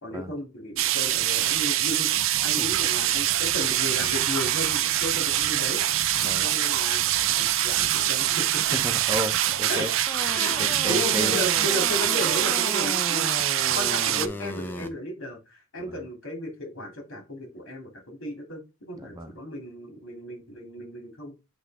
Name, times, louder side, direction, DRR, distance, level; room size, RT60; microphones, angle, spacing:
voice 1, 0.0-5.8 6.4-8.6 9.7-9.9 10.3-13.3 13.7-21.3, left 1 dB, 80° left, 2.9 m, -34 dB
sound 1, 0.8-14.3, right 13 dB, 75° right, 0.5 m, -24 dB
Animal, 2.7-8.5, left 4 dB, 40° left, 2.9 m, -46 dB
voice 2, 6.2-6.5 8.7-9.9 10.6-11.4 15.8-16.0 19.0-19.3, right 1 dB, 15° right, 0.8 m, -33 dB
sound 2, 10.1-14.9, left 1 dB, 10° left, 0.6 m, -35 dB
8.0 x 3.4 x 3.6 m
head